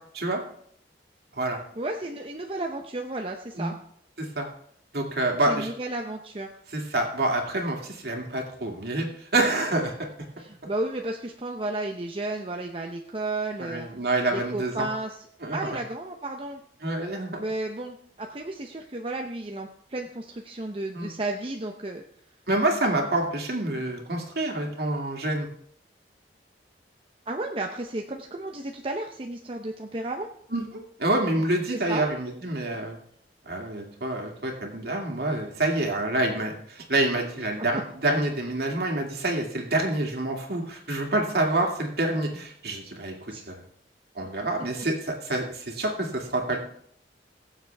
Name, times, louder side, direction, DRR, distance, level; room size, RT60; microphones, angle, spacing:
voice 1, 1.8-3.7 5.5-6.5 10.4-13.9 14.3-15.1 15.5-16.6 17.4-22.0 27.3-30.3 31.7-32.0 43.3-43.5, right 2 dB, 30° right, 2 dB, 0.8 m, -33 dB
voice 2, 4.9-5.7 6.7-9.9 13.6-14.9 15.4-15.8 16.8-17.4 20.9-21.1 22.5-25.5 30.5-30.7 31.0-33.0 33.5-43.1 43.5-43.6 44.1-46.6, right 2 dB, 60° right, 1 dB, 2.4 m, -27 dB
22.0 x 7.4 x 3.5 m, 0.66 s
head